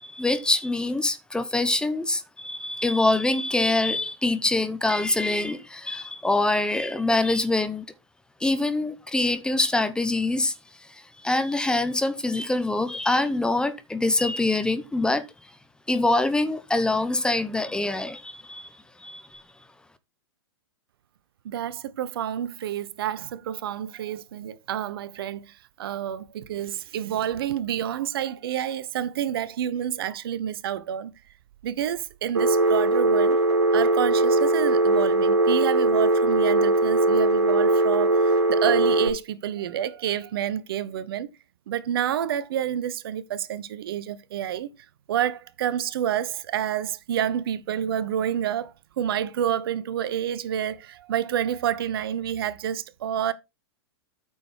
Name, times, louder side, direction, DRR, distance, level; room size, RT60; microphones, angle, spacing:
voice 1, 0.0-7.9 8.4-10.5 11.2-15.3 15.9-18.7 19.0-19.4, left 2 dB, 5° left, 0.8 m, -24 dB
voice 2, 21.4-31.1 31.6-33.4 33.7-41.3 41.7-44.7 45.1-53.3, right 10 dB, 60° right, 1.1 m, -29 dB
Telephone, 32.3-39.1, right 2 dB, 80° right, 1.6 m, -20 dB
9.1 x 6.6 x 4.4 m
figure-of-eight pair, 105°, 14 cm